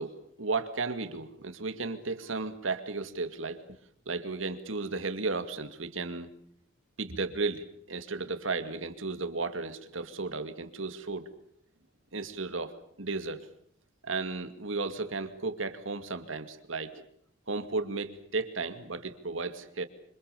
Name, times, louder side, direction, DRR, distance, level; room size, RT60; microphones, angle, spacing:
voice 1, 0.0-3.6 4.1-6.3 7.0-11.3 12.1-13.4 14.0-17.0 17.5-19.8, right 3 dB, 70° right, 9 dB, 2.2 m, -34 dB
27.0 x 26.0 x 6.9 m, 0.64 s
head